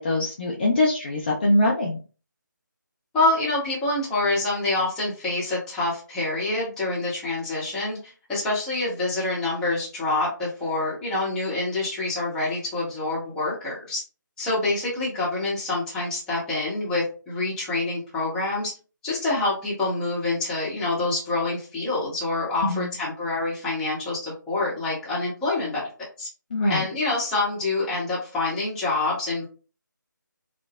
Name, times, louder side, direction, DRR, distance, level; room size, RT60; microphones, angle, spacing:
voice 1, 0.0-2.0 22.6-22.9 26.5-26.8, left 1 dB, 30° left, -4 dB, 0.5 m, -23 dB
voice 2, 3.1-14.0 14.4-18.7 19.0-25.8 26.2-26.3 26.7-29.4, left 2 dB, 5° left, -8 dB, 0.8 m, -26 dB
4.5 x 2.0 x 2.3 m, 0.35 s
figure-of-eight pair, 155°, 11 cm